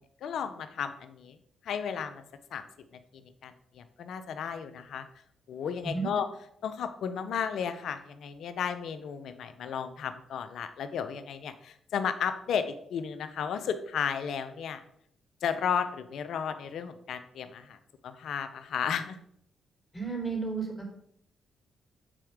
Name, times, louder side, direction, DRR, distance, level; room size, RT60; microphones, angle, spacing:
voice 1, 0.0-1.4 1.6-2.2 2.5-2.6 2.9-5.1 5.5-6.3 6.6-14.8 15.4-19.2, left 7 dB, 75° left, 10 dB, 0.7 m, -34 dB
voice 2, 19.9-20.9, right 4 dB, 15° left, 0 dB, 3.4 m, -32 dB
7.6 x 4.4 x 4.9 m, 0.70 s
supercardioid pair, 55°, 0 cm